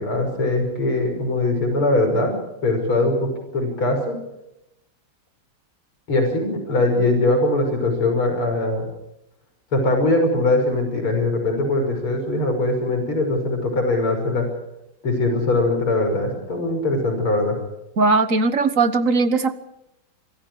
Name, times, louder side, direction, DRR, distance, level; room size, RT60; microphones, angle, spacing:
voice 1, 0.0-2.4 2.6-4.2 6.1-8.9 9.7-14.5 15.0-17.6, left 2 dB, 90° left, 5 dB, 6.7 m, -21 dB
voice 2, 18.0-19.5, right 3 dB, 40° right, 11 dB, 1.6 m, -19 dB
26.0 x 25.5 x 4.9 m, 0.83 s
omnidirectional pair, 2.3 m